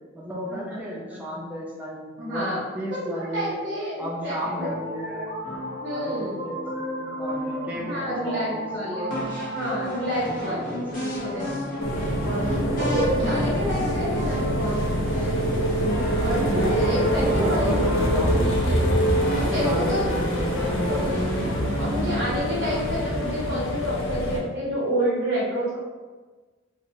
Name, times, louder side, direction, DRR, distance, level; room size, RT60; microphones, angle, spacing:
voice 1, 0.1-3.5 4.0-5.3 5.9-8.6 10.5-11.1 16.5-16.8 17.2-18.4 19.3-21.1, right 1 dB, 10° right, -5 dB, 0.3 m, -34 dB
voice 2, 2.2-2.6 2.9-4.7 5.5-6.4 7.7-9.2 9.5-11.5 12.2-15.3 16.2-19.1 19.3-20.1 20.8-21.2 21.8-25.8, equal, 60° right, -6 dB, 0.8 m, -29 dB
sound 1, 4.4-21.5, equal, 45° left, 0.8 m, -33 dB
sound 2, 11.8-24.4, equal, 85° left, 0.5 m, -24 dB
2.8 x 2.1 x 2.7 m, 1.3 s
head